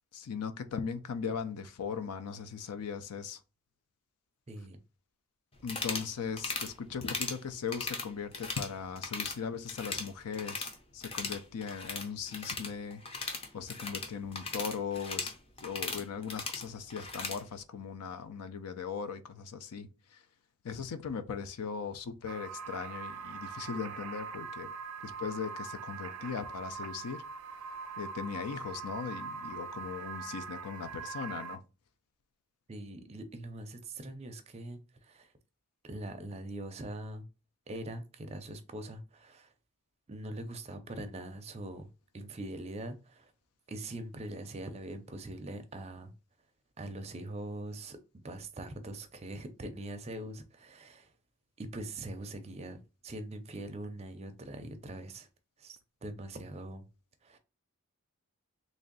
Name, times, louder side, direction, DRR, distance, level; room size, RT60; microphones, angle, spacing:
voice 1, 0.1-3.4 5.6-13.0 13.5-15.3 15.6-20.2 20.6-24.7 25.0-27.2 28.0-31.6, left 6 dB, 85° left, 0.5 m, -39 dB
voice 2, 4.5-4.8 32.7-35.3 35.8-37.3 37.7-39.5 40.1-41.9 42.1-43.3 43.7-46.1 46.8-48.0 48.2-51.1 51.6-55.3 55.6-56.9 57.2-57.4, right 1 dB, 30° right, 0.4 m, -42 dB
sound 1, 5.6-6.1 6.4-6.7 7.0-7.4 7.7-8.7 9.0-9.4 9.7-10.8 11.0-17.4, left 3 dB, 25° left, 0.5 m, -38 dB
sound 2, 22.2-31.6, right 5 dB, 80° right, 0.5 m, -42 dB
3.1 x 2.6 x 3.9 m
head